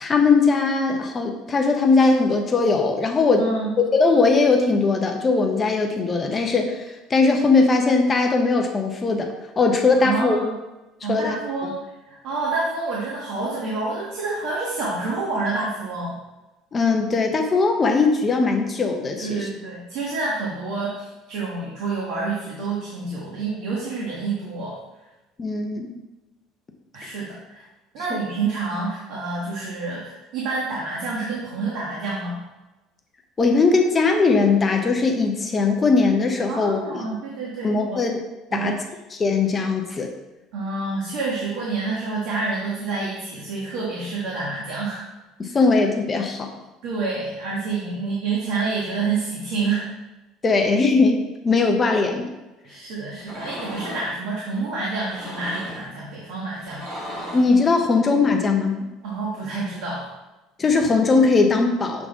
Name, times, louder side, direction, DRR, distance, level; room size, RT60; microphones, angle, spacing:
voice 1, 0.0-3.5 3.8-6.8 7.1-9.3 9.6-10.4 11.1-11.4 11.6-11.7 16.7-19.5 25.4-25.9 28.1-28.2 33.4-37.0 37.6-38.2 38.5-38.8 39.1-40.1 45.4-46.5 50.4-52.2 57.3-58.9 60.6-62.1, left 4 dB, 20° left, 3 dB, 0.6 m, -20 dB
voice 2, 3.4-3.8 9.9-10.5 11.0-11.8 12.1-16.2 19.2-24.8 26.9-27.6 27.9-32.4 36.5-38.0 38.5-38.8 40.5-45.0 46.8-49.8 51.9-52.0 52.6-56.8 59.0-60.1, right 3 dB, 60° right, -4 dB, 1.3 m, -28 dB
sound 1, 53.2-54.1 55.0-55.9 56.6-57.6, equal, 40° right, 1.8 m, -35 dB
7.1 x 3.9 x 3.5 m, 1.1 s
cardioid pair, 170°, 0 cm